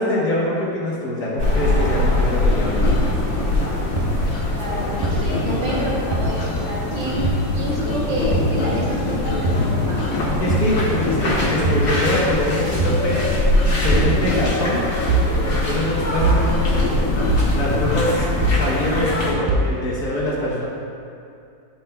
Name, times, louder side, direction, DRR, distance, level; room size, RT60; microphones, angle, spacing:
voice 1, 0.0-3.1 10.4-13.2 13.8-14.8 15.5-17.0 17.5-20.7, left 1 dB, 60° left, -6 dB, 1.5 m, -24 dB
sound 1, 1.4-19.3, left 1 dB, 35° left, 1.4 m, -23 dB
sound 2, 2.5-18.4, left 3 dB, 85° left, 1.6 m, -29 dB
sound 3, 4.0-4.1 5.0-5.1 6.1-6.2 7.2-7.4 8.3-8.5 9.4-9.6 10.5-10.7 11.6-11.9 12.8-13.0 13.9-14.1 15.1-15.3 16.2-16.4 17.3-17.5 18.4-18.6 19.5-19.7, right 3 dB, 60° right, 0.4 m, -20 dB
voice 2, 4.6-7.3 7.5-10.1, equal, 80° right, -4 dB, 2.1 m, -28 dB
11.0 x 5.7 x 2.2 m, 2.5 s
omnidirectional pair, 2.0 m